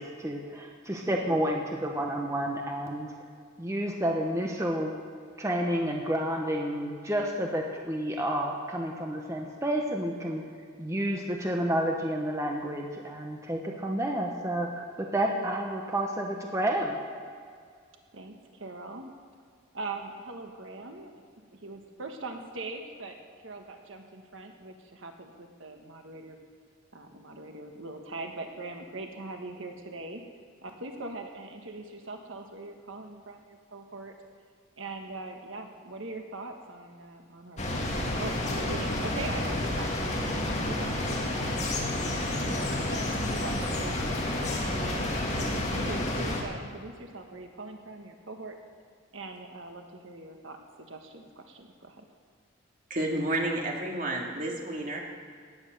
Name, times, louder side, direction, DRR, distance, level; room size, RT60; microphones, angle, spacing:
voice 1, 0.0-3.1 3.6-5.0 5.4-10.4 10.8-17.0, right 1 dB, 15° right, 0 dB, 1.1 m, -30 dB
voice 2, 18.1-19.1 19.7-21.2 21.5-23.2 23.4-26.4 26.9-30.2 30.6-34.1 34.8-40.3 40.6-48.5 49.1-52.0, right 2 dB, 75° right, 4 dB, 1.4 m, -42 dB
sound 1, 37.6-46.4, left 1 dB, 35° left, 2.3 m, -30 dB
voice 3, 52.9-55.0, right 1 dB, 40° right, -1 dB, 2.4 m, -30 dB
17.5 x 10.0 x 6.7 m, 2.1 s
head